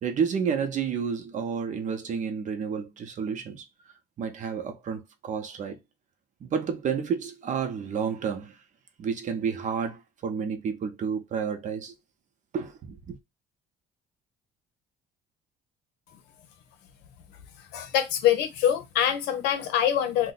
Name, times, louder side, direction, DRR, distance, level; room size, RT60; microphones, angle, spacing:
voice 1, 0.0-3.6 4.2-5.8 6.4-8.5 9.0-11.9 12.5-13.2, right 6 dB, 45° right, 0.7 m, -30 dB
voice 2, 17.7-20.3, left 10 dB, 90° left, 0.7 m, -24 dB
2.6 x 2.2 x 4.0 m
cardioid pair, 110°, 17 cm